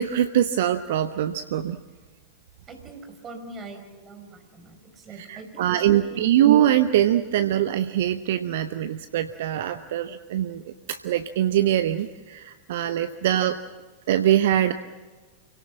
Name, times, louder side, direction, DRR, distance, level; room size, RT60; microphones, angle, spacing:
voice 1, 0.0-1.8 5.1-13.6 14.1-14.7, right 11 dB, 55° right, 11 dB, 0.8 m, -23 dB
voice 2, 2.7-6.3, right 3 dB, 25° right, 5 dB, 4.9 m, -42 dB
28.5 x 18.0 x 7.3 m, 1.4 s
figure-of-eight pair, 90°, 0 cm